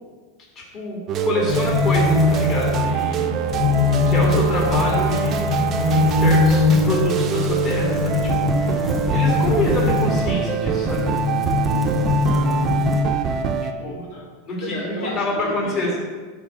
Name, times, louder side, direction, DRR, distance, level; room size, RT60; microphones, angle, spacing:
voice 1, 0.6-3.3 3.9-11.1 13.8-14.0 14.5-16.0, left 1 dB, 40° left, -3 dB, 2.2 m, -27 dB
sound 1, 1.1-13.7, right 7 dB, 35° right, 0.4 m, -24 dB
sound 2, 1.5-10.3 10.9-13.0, left 4 dB, 10° left, 1.0 m, -21 dB
Wind instrument woodwind instrument, 2.0-7.0, right 7 dB, 90° right, 0.5 m, -34 dB
voice 2, 12.2-12.7 13.4-14.3 14.6-16.0, left 1 dB, 85° left, -4 dB, 1.6 m, -34 dB
5.7 x 4.0 x 6.0 m, 1.4 s
supercardioid pair, 130°, 0 cm